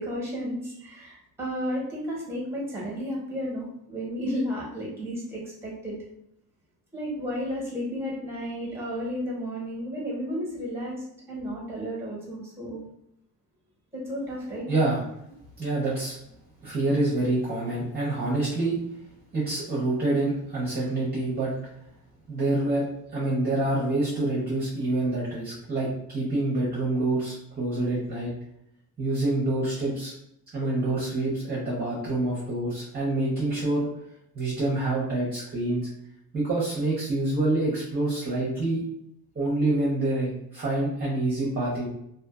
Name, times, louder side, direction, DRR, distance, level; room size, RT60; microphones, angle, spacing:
voice 1, 0.0-5.9 6.9-12.8 13.9-14.7, equal, 5° right, -4 dB, 1.0 m, -33 dB
voice 2, 14.7-15.0 15.6-16.2 16.6-18.8 19.3-21.5 22.3-22.8 23.1-28.3 29.0-30.1 30.5-33.9 34.3-35.9 36.3-38.8 39.3-41.9, right 2 dB, 25° right, -7 dB, 0.7 m, -26 dB
2.5 x 2.5 x 2.3 m, 0.78 s
cardioid pair, 140°, 37 cm